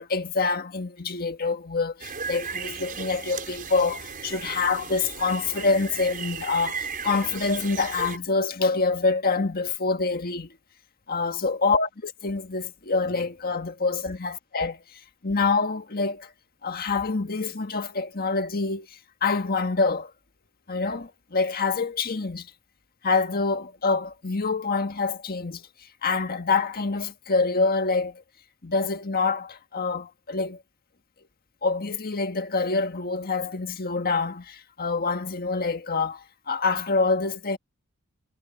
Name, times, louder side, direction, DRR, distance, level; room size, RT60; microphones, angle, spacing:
voice 1, 0.0-10.5 11.1-16.3 16.6-20.1 20.7-22.5 23.0-25.7 26.0-28.2 28.6-30.6 31.6-37.6, left 4 dB, 45° left, 1.6 m, -26 dB
sound 1, 2.0-8.2, right 6 dB, 40° right, 5.3 m, -36 dB
head